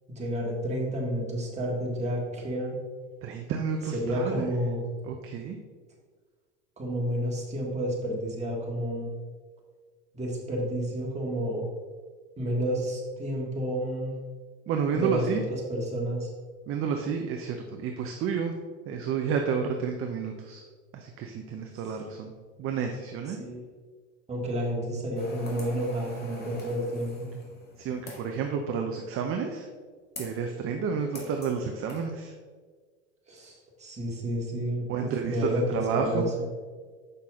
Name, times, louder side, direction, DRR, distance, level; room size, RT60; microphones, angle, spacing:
voice 1, 0.1-2.8 3.9-4.8 6.8-9.1 10.1-11.6 12.4-14.2 14.9-16.3 21.9-22.0 23.4-23.6 24.3-27.3 33.3-36.5, equal, 20° right, -2 dB, 2.1 m, -30 dB
voice 2, 3.2-4.5 5.0-5.6 14.7-15.4 16.7-18.5 18.9-20.6 20.9-22.3 22.6-23.4 27.8-29.7 30.2-32.3 34.9-36.2, right 6 dB, 40° right, 4 dB, 0.7 m, -30 dB
sound 1, 25.2-28.4 30.2-30.4 31.2-31.6 31.9-32.0, left 1 dB, 30° left, 1.9 m, -43 dB
6.8 x 5.6 x 3.7 m, 1.5 s
hypercardioid pair, 90°, 35 cm